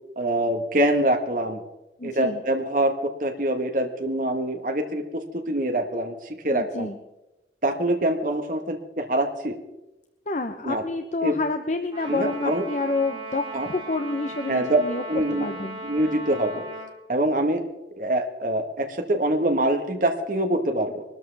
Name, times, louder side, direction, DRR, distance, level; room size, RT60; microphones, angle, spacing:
voice 1, 0.2-1.6 2.0-6.1 6.4-6.9 7.6-9.6 10.6-10.8 11.2-11.4 12.1-12.6 13.5-13.7 14.5-14.8 15.1-15.5 15.8-16.6 17.1-17.6 18.0-21.0, right 1 dB, 45° right, 4 dB, 1.3 m, -24 dB
voice 2, 2.0-2.4 6.5-7.0 10.3-15.0 15.3-15.8, left 2 dB, 40° left, 6 dB, 0.8 m, -28 dB
Trumpet, 11.9-16.9, right 2 dB, 25° right, 5.4 m, -37 dB
23.0 x 13.5 x 3.4 m, 0.96 s
head